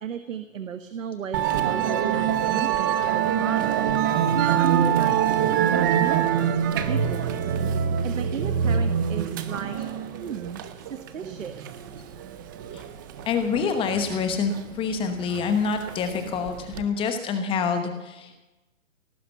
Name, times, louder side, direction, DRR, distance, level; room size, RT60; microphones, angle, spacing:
voice 1, 0.0-5.2 5.6-6.5 6.9-7.3 7.8-9.8 10.2-10.6 10.9-11.6, right 7 dB, 75° right, 10 dB, 1.3 m, -34 dB
Musical instrument, 1.3-16.8, right 9 dB, 15° right, 0.5 m, -25 dB
voice 2, 13.3-18.4, left 5 dB, 15° left, 7 dB, 1.0 m, -27 dB
18.0 x 10.0 x 7.0 m, 1.0 s
hypercardioid pair, 150°, 39 cm